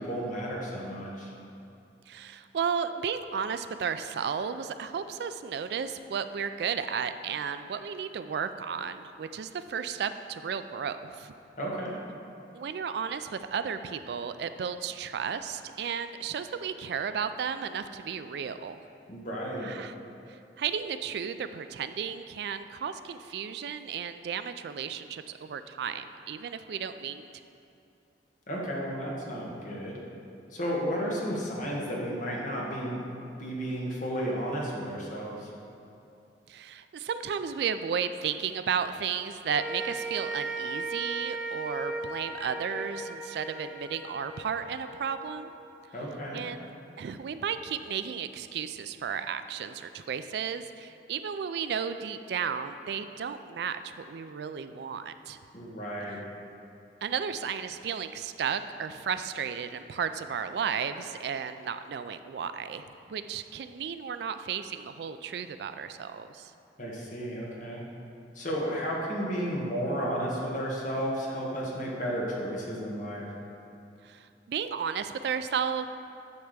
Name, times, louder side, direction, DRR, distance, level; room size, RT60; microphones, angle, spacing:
voice 1, 0.0-1.3 11.6-12.0 19.1-19.7 28.5-30.0 30.5-33.0 33.3-35.5 45.9-46.4 55.5-56.2 66.8-67.8 68.3-73.2, equal, 45° left, -3 dB, 1.4 m, -33 dB
voice 2, 2.1-11.3 12.5-18.8 19.6-19.9 20.3-27.2 36.5-45.5 46.3-46.7 47.0-55.4 57.0-66.5 74.0-75.9, right 7 dB, 65° right, 11 dB, 0.3 m, -34 dB
sound 1, 39.5-45.9, right 3 dB, 5° right, 0.7 m, -37 dB
9.5 x 3.5 x 6.6 m, 2.6 s
head